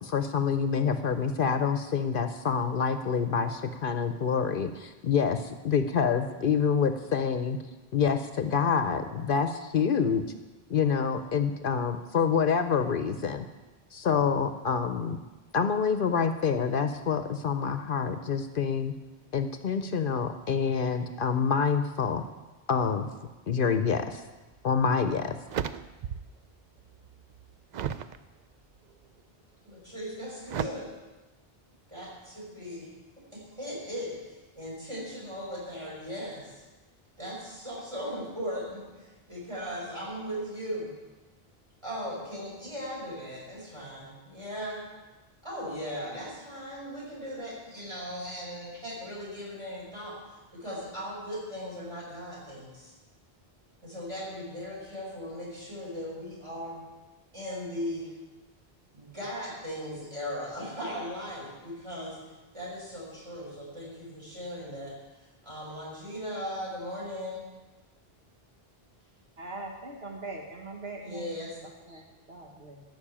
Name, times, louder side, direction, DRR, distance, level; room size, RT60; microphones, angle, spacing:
voice 1, 0.0-7.6 7.9-10.2 10.7-13.5 13.9-15.2 15.5-18.9 19.3-22.2 22.7-23.1 23.5-24.2 24.6-25.4, left 6 dB, 60° left, 9 dB, 0.8 m, -27 dB
sound 1, 24.5-24.6 25.1-26.4 26.8-28.2 28.8-29.2 30.5-30.7, right 8 dB, 55° right, 0.5 m, -35 dB
voice 2, 29.6-30.9 31.9-32.9 33.2-36.6 37.2-40.9 41.8-44.8 45.4-52.9 53.8-56.8 57.3-58.1 58.9-62.2 62.5-67.4 71.0-71.5, equal, 30° right, -5 dB, 5.7 m, -38 dB
voice 3, 69.4-71.4 71.6-72.8, right 2 dB, 80° right, 0 dB, 1.7 m, -42 dB
13.0 x 6.2 x 8.7 m, 1.2 s
omnidirectional pair, 1.0 m